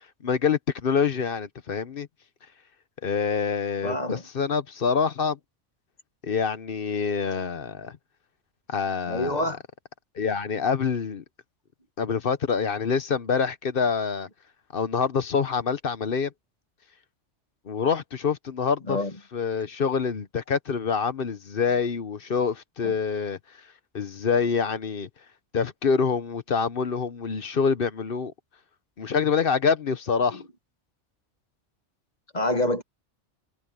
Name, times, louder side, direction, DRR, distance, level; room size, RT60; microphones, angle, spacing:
voice 1, 0.2-2.1 3.0-5.4 6.2-7.9 8.7-9.4 10.2-11.2 12.0-14.3 14.7-16.3 17.7-19.0 19.3-23.4 23.9-25.1 25.5-28.3 29.0-30.4, left 6 dB, 50° left, 1.0 m, -26 dB
voice 2, 3.8-4.2 9.1-9.6 18.9-19.1 22.8-22.9 30.3-30.4 32.3-32.8, left 1 dB, 35° left, 2.2 m, -27 dB
omnidirectional pair, 1.2 m